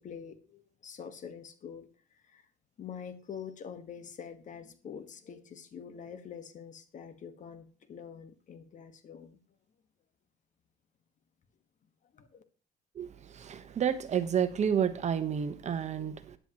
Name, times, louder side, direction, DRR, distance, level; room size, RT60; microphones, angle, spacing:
voice 1, 0.0-1.9 2.3-2.4 2.8-9.4 12.1-12.4, left 7 dB, 45° left, 9 dB, 1.5 m, -45 dB
voice 2, 13.0-16.4, right 8 dB, 45° right, 10 dB, 1.2 m, -30 dB
14.0 x 10.0 x 3.1 m, 0.39 s
cardioid pair, 110°, 17 cm